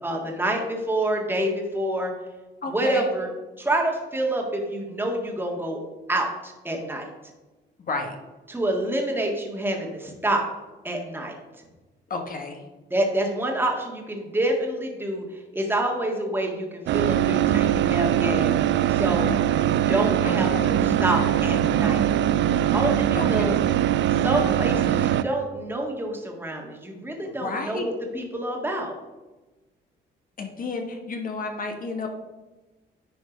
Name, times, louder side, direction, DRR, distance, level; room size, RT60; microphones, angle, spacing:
voice 1, 0.0-2.1 2.7-3.3 3.6-5.8 6.1-7.0 8.5-10.4 10.8-11.3 12.9-22.0 22.7-23.5 24.2-28.9, right 1 dB, 10° right, 0 dB, 1.7 m, -27 dB
voice 2, 2.6-3.1 7.9-8.1 12.1-12.6 20.2-20.8 23.2-23.5 27.2-27.8 30.4-32.1, left 3 dB, 45° left, 3 dB, 1.4 m, -32 dB
sound 1, 16.9-25.2, right 11 dB, 65° right, 0.4 m, -22 dB
10.0 x 4.4 x 5.1 m, 1.1 s
cardioid pair, 90°, 20 cm